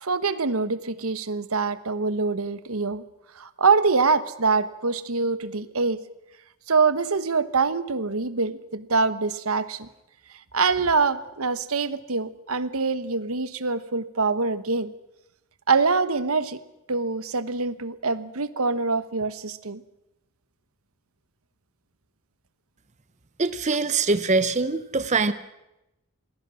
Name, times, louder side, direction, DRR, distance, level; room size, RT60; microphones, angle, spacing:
voice 1, 0.0-3.0 3.4-6.0 6.7-9.9 10.5-14.9 15.7-16.6 16.9-19.8, right 4 dB, 75° right, 14 dB, 1.2 m, -24 dB
voice 2, 23.4-25.3, right 3 dB, 30° right, 12 dB, 0.8 m, -23 dB
27.0 x 20.5 x 6.3 m, 0.93 s
head